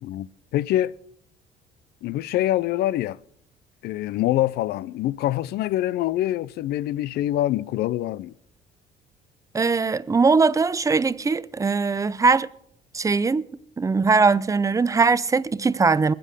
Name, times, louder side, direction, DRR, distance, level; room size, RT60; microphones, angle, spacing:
voice 1, 0.0-0.9 2.0-3.2 3.8-8.3, left 14 dB, 70° left, 0.5 m, -25 dB
voice 2, 9.5-12.5 12.9-13.4 13.8-16.1, right 4 dB, 20° right, 0.5 m, -20 dB
20.5 x 7.7 x 6.5 m
cardioid pair, 110°, 17 cm